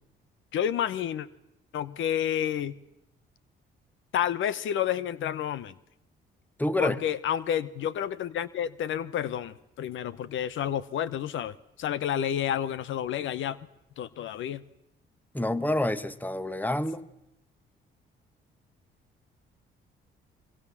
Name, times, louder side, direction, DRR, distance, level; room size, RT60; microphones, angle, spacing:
voice 1, 0.5-1.3 1.7-2.8 4.1-5.7 6.8-13.6 14.0-14.6, left 10 dB, 75° left, 17 dB, 1.0 m, -30 dB
voice 2, 6.6-7.0 15.3-17.0, left 1 dB, 10° left, 15 dB, 1.2 m, -28 dB
24.5 x 23.5 x 7.4 m, 0.86 s
cardioid pair, 90°, 20 cm